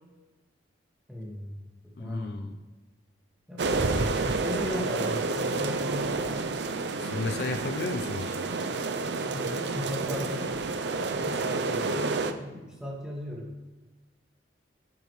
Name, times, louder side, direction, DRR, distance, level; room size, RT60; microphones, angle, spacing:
voice 1, 1.1-2.5 3.5-6.5 9.0-10.5 11.1-13.5, left 1 dB, 5° right, -3 dB, 1.9 m, -37 dB
voice 2, 2.0-2.6 7.0-8.4, left 3 dB, 55° left, 7 dB, 0.5 m, -33 dB
sound 1, 3.6-12.3, right 3 dB, 65° right, 0.6 m, -29 dB
10.5 x 9.2 x 3.2 m, 1.2 s
head